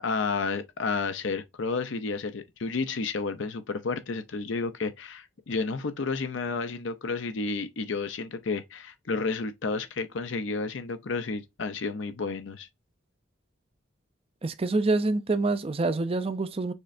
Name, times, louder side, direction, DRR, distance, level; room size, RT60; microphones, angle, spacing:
voice 1, 0.0-12.7, left 4 dB, 70° left, 0.6 m, -31 dB
voice 2, 14.4-16.7, right 3 dB, 30° right, 0.4 m, -26 dB
6.5 x 3.2 x 2.5 m
head